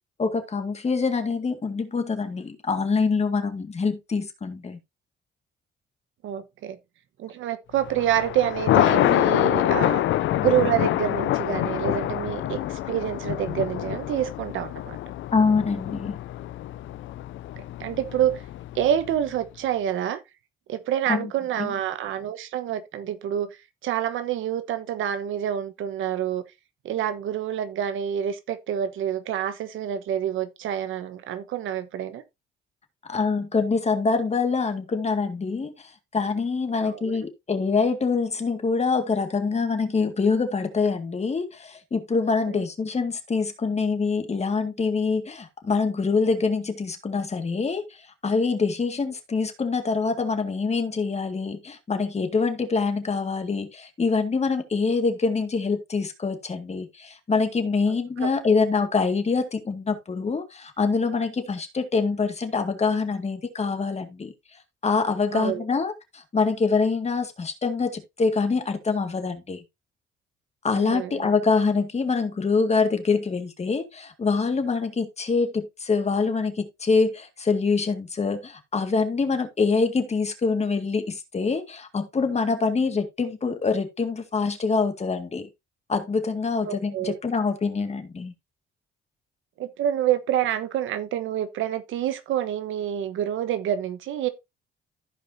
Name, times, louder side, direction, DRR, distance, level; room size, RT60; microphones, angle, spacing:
voice 1, 0.2-4.8 15.3-16.2 21.1-21.3 21.6-21.7 33.1-64.3 64.8-69.6 70.6-85.5 85.9-88.3, left 4 dB, 35° left, 2.0 m, -25 dB
voice 2, 6.2-6.8 7.2-10.0 10.3-15.0 17.8-18.4 18.7-20.2 20.7-23.5 23.8-26.4 26.8-32.2 36.7-37.1 42.5-42.6 65.3-65.6 70.8-71.3 86.6-87.2 89.6-94.3, right 10 dB, 80° right, 1.1 m, -27 dB
Thunder, 7.8-19.2, left 14 dB, 75° left, 0.5 m, -26 dB
15.0 x 5.0 x 2.7 m
cardioid pair, 90°, 20 cm